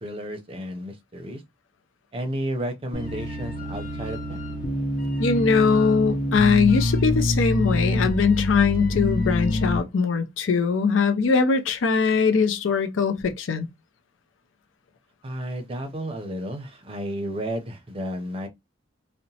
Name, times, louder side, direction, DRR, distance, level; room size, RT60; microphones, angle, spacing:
voice 1, 0.0-1.4 2.1-4.4 15.2-18.5, equal, 30° right, 0.5 m, -32 dB
sound 1, 2.9-9.8, left 1 dB, 45° left, 0.7 m, -26 dB
voice 2, 5.2-13.7, left 5 dB, 80° left, 0.5 m, -21 dB
2.8 x 2.0 x 2.7 m
head